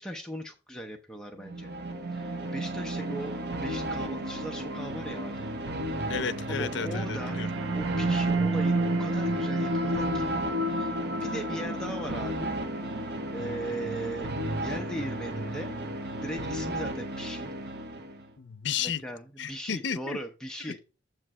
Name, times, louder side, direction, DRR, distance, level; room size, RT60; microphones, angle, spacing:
voice 1, 0.0-1.7 2.1-5.5 6.5-7.4 7.7-10.3 10.8-10.9 11.2-12.6 13.3-15.8 16.2-17.5 18.8-20.8, right 1 dB, 5° left, 0.6 m, -38 dB
sound 1, 1.4-16.7, right 2 dB, 85° right, 0.8 m, -33 dB
sound 2, 1.5-18.3, equal, 60° right, 1.0 m, -35 dB
voice 2, 6.1-7.5 11.3-11.4 18.4-19.0 19.4-20.2 20.6-20.8, left 7 dB, 65° left, 0.6 m, -33 dB
7.5 x 3.2 x 6.0 m
head